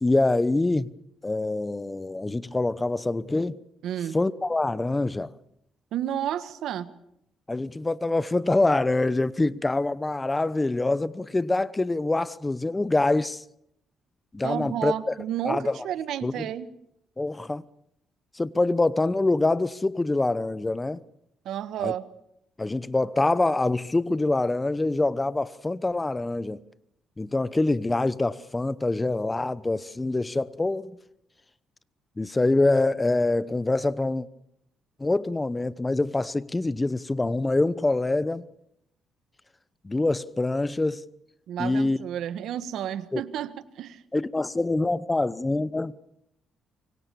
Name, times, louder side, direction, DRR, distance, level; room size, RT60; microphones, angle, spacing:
voice 1, 0.0-0.9 1.2-3.6 4.1-5.3 7.5-13.4 14.3-15.1 15.4-15.8 16.2-16.4 17.2-17.6 18.3-21.0 21.8-21.9 22.6-26.6 27.2-31.0 32.2-34.3 35.0-38.4 39.8-41.0 41.6-42.0 43.1-43.2 44.1-45.9, left 2 dB, 20° left, 0.9 m, -25 dB
voice 2, 3.8-4.2 5.9-6.9 14.4-16.7 21.4-22.0 41.5-44.0, right 10 dB, 80° right, 1.4 m, -31 dB
25.0 x 24.0 x 7.0 m
cardioid pair, 90°, 0 cm